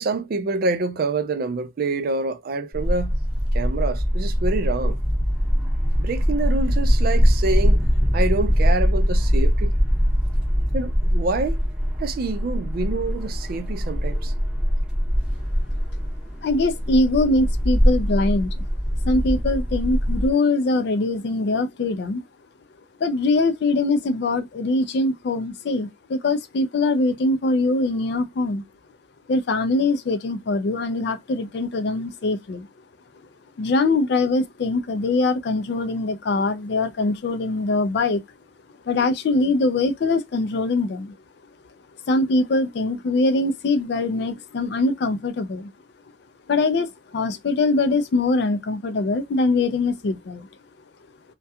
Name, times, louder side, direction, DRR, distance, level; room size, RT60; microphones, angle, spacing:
voice 1, 0.0-3.2 3.5-5.0 6.0-7.8 8.1-9.7 10.7-11.6 12.0-14.3, right 3 dB, 50° right, 0.3 m, -26 dB
sound 1, 2.7-20.3, equal, 5° right, 0.9 m, -22 dB
voice 2, 16.4-18.6 19.0-22.2 23.0-28.6 29.3-32.7 33.6-38.2 38.9-41.1 42.1-45.7 46.5-50.5, left 2 dB, 55° left, 0.4 m, -22 dB
2.3 x 2.1 x 2.7 m
head